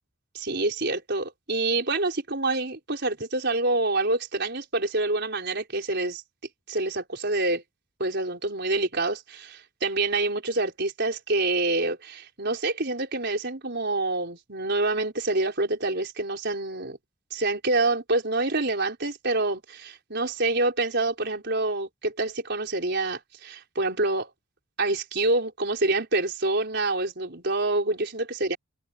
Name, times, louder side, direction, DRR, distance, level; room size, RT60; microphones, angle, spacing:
voice 1, 0.3-6.2 6.7-7.6 8.0-17.0 17.3-24.3 24.8-28.6, right 2 dB, 50° right, 4.9 m, -27 dB
head